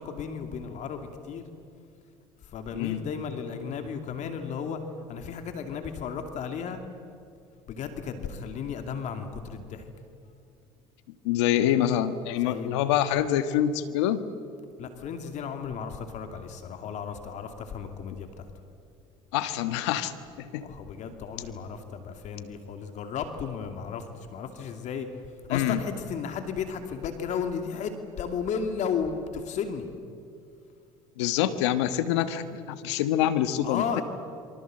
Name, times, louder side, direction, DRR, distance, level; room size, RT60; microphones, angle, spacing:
voice 1, 0.0-1.4 2.5-4.8 5.1-6.8 7.7-9.9 12.4-12.7 14.8-18.5 20.6-24.1 24.3-25.1 25.5-27.9 28.2-29.9 33.6-34.0, left 6 dB, 55° left, 6 dB, 2.6 m, -34 dB
voice 2, 2.7-3.0 11.2-14.2 19.3-20.1 20.4-20.7 25.5-25.8 31.2-33.8, left 11 dB, 80° left, 11 dB, 1.4 m, -26 dB
27.5 x 24.0 x 7.8 m, 2.4 s
hypercardioid pair, 75°, 14 cm